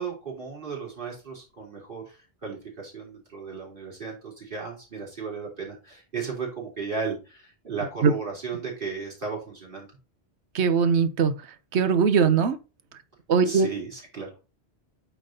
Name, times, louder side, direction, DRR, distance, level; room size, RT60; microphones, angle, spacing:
voice 1, 0.0-9.9 13.4-14.3, right 5 dB, 50° right, 3.8 m, -35 dB
voice 2, 10.5-11.3 11.7-12.6 13.3-13.7, right 6 dB, 85° right, 1.1 m, -20 dB
9.0 x 3.6 x 3.9 m
omnidirectional pair, 1.1 m